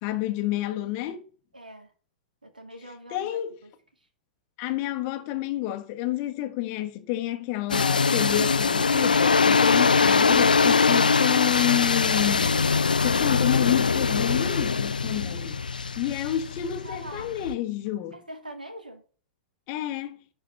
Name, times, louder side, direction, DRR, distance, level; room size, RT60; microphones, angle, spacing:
voice 1, 0.0-1.3 2.8-3.6 4.6-15.6 16.0-18.2 19.7-20.2, left 14 dB, 40° left, 1.3 m, -29 dB
voice 2, 1.5-1.9 2.4-3.4 16.8-17.3 18.1-19.0, right 1 dB, 80° right, 2.5 m, -42 dB
sound 1, 7.7-17.5, left 5 dB, 75° left, 0.3 m, -22 dB
11.5 x 4.9 x 6.1 m
figure-of-eight pair, 100°, 5 cm